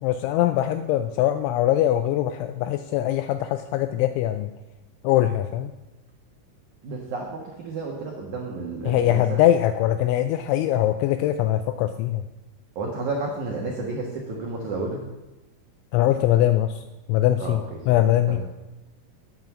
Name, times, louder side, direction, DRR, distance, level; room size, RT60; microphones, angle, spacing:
voice 1, 0.0-4.5 5.0-5.7 8.9-12.2 15.9-16.8 17.1-18.4, left 12 dB, 85° left, 9 dB, 2.7 m, -22 dB
voice 2, 6.8-9.4 12.7-15.0 17.4-18.0 18.3-18.4, right 3 dB, 85° right, 0 dB, 1.7 m, -31 dB
9.6 x 9.5 x 7.3 m, 1.0 s
omnidirectional pair, 5.9 m